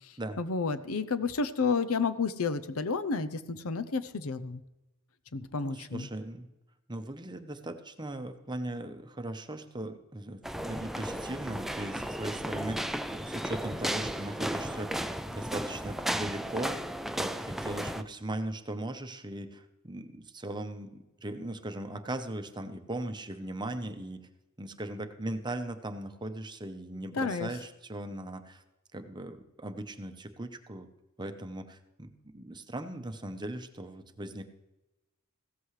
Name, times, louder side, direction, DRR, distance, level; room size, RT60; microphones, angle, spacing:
voice 1, 0.4-4.6 5.3-6.1 27.1-27.5, left 4 dB, 70° left, 13 dB, 0.7 m, -31 dB
voice 2, 5.6-6.5 6.9-12.9 13.1-24.3 24.6-28.6 28.9-30.9 31.2-34.5, right 1 dB, 20° right, 8 dB, 0.9 m, -39 dB
sound 1, 10.4-18.0, right 1 dB, ahead, 0.4 m, -34 dB
16.0 x 14.0 x 3.3 m, 1.0 s
head